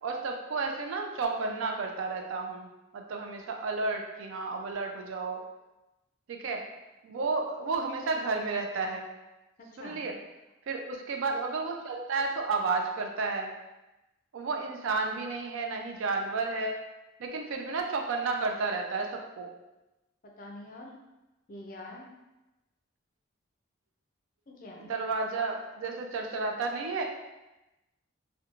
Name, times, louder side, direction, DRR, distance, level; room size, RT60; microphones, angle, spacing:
voice 1, 0.0-5.4 6.3-6.6 7.0-9.1 9.8-10.1 10.7-13.5 14.3-16.7 17.2-19.5 24.8-27.0, right 3 dB, 80° right, 3 dB, 0.4 m, -32 dB
voice 2, 9.6-10.0 20.4-21.0 21.5-22.1 24.5-25.0, left 1 dB, 40° left, 0 dB, 0.4 m, -45 dB
2.9 x 2.2 x 2.4 m, 1.0 s
head